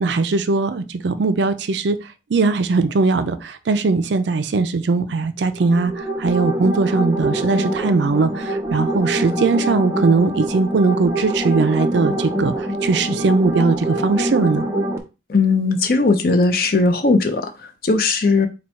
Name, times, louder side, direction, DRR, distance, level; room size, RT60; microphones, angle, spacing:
voice 1, 0.0-2.0 2.3-14.7, right 3 dB, 70° right, 0.4 m, -19 dB
sound 1, 5.5-15.0, right 1 dB, 15° right, 0.5 m, -24 dB
voice 2, 15.3-18.5, left 3 dB, 50° left, 0.5 m, -18 dB
4.2 x 2.2 x 4.3 m
head